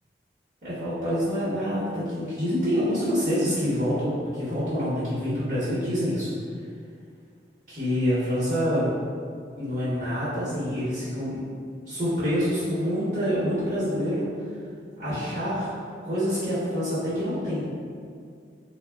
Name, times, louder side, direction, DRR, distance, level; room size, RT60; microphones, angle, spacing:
voice 1, 0.6-6.3 7.7-8.9 9.6-11.4 11.9-14.3 15.0-15.7 16.0-17.6, equal, 45° right, -13 dB, 1.0 m, -26 dB
3.2 x 2.2 x 2.3 m, 2.3 s
head